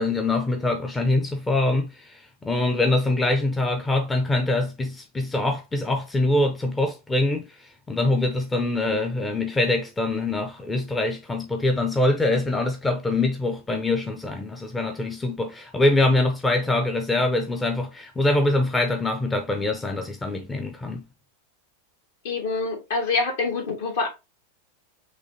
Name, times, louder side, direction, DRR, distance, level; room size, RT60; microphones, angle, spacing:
voice 1, 0.0-7.6 7.9-21.0, left 2 dB, 10° left, 0.7 m, -24 dB
voice 2, 22.2-24.1, left 4 dB, 55° left, 1.6 m, -26 dB
6.2 x 2.8 x 2.7 m
figure-of-eight pair, 90°, 0 cm